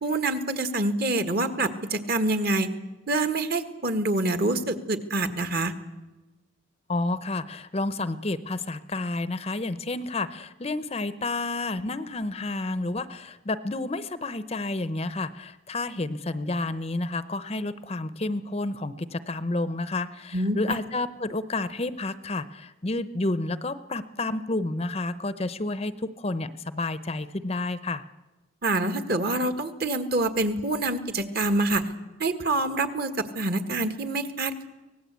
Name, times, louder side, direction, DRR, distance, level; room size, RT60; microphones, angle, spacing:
voice 1, 0.0-2.7 3.1-5.7 20.3-20.8 28.6-31.9 32.2-34.7, right 2 dB, 45° right, 9 dB, 1.6 m, -26 dB
voice 2, 6.9-28.0, left 2 dB, 30° left, 13 dB, 0.7 m, -30 dB
24.5 x 18.5 x 8.2 m, 1.1 s
head